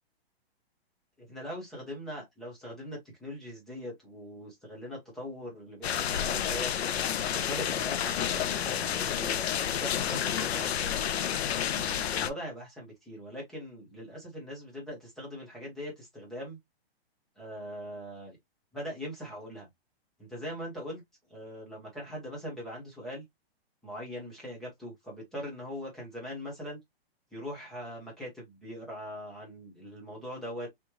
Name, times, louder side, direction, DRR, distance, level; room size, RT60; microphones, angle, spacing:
voice 1, 1.2-6.7 7.3-9.4 9.7-11.1 11.6-16.6 17.4-18.4 18.7-19.7 20.2-21.0 21.3-23.2 23.8-26.8 27.3-30.7, equal, ahead, 0.5 m, -41 dB
sound 1, 5.8-12.3, left 9 dB, 80° left, 0.6 m, -30 dB
3.4 x 3.0 x 2.9 m
hypercardioid pair, 170°, 31 cm